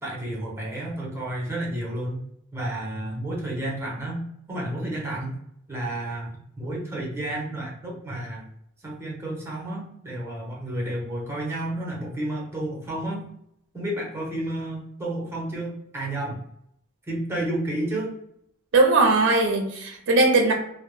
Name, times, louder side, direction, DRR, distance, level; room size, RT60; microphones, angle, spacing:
voice 1, 0.0-2.2 2.5-5.4 5.7-6.3 6.6-8.5 8.8-13.3 13.7-16.4 17.1-18.2, right 1 dB, 10° right, -2 dB, 0.7 m, -31 dB
voice 2, 18.7-20.5, right 3 dB, 55° right, 2 dB, 0.5 m, -19 dB
2.1 x 2.0 x 3.1 m, 0.75 s
head